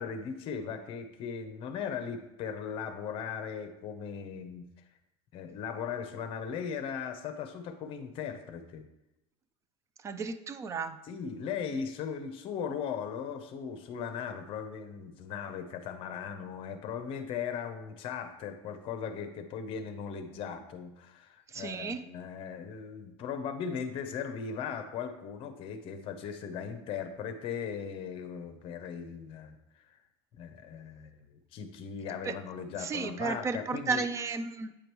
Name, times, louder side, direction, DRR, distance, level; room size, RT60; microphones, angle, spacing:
voice 1, 0.0-4.6 5.3-8.8 11.1-30.0 30.4-34.0, left 7 dB, 40° left, 8 dB, 0.8 m, -38 dB
voice 2, 10.0-11.0 21.5-22.0 32.2-32.3 32.8-34.7, right 4 dB, 20° right, 12 dB, 0.4 m, -33 dB
8.7 x 5.0 x 3.1 m, 0.95 s
supercardioid pair, 140°, 14 cm